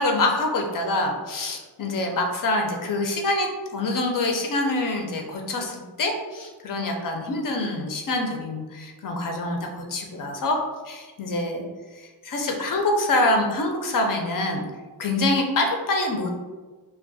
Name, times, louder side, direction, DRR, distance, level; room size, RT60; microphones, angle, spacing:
voice 1, 0.0-10.6 10.8-11.6 11.9-14.7 15.0-16.3, left 2 dB, 45° left, 2 dB, 0.6 m, -25 dB
2.3 x 2.2 x 2.5 m, 1.3 s
cardioid pair, 50°, 46 cm